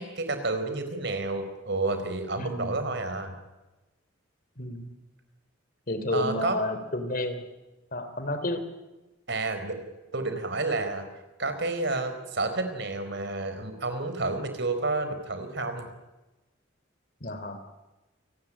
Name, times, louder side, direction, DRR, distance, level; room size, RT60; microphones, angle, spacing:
voice 1, 0.0-3.3 6.1-6.6 9.3-9.8 10.1-11.1 11.4-15.9, right 3 dB, 60° right, 8 dB, 4.4 m, -30 dB
voice 2, 2.3-2.9 4.6-4.9 5.9-7.4 7.9-8.6 17.2-17.6, left 1 dB, 45° left, 9 dB, 3.2 m, -31 dB
28.0 x 19.0 x 10.0 m, 1.1 s
head